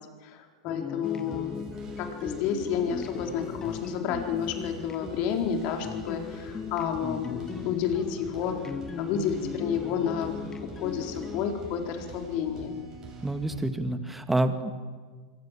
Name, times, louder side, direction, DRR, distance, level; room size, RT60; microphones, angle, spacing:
voice 1, 0.2-1.6 2.0-8.6 9.0-12.8, left 8 dB, 50° left, 4 dB, 4.3 m, -30 dB
sound 1, 0.7-11.4, left 5 dB, 20° left, 0.9 m, -38 dB
sound 2, 1.0-13.7, right 3 dB, 25° right, 7.9 m, -46 dB
voice 2, 13.2-14.7, right 2 dB, 5° right, 9 dB, 2.1 m, -27 dB
25.0 x 23.5 x 7.6 m, 1.5 s
hypercardioid pair, 110°, 3 cm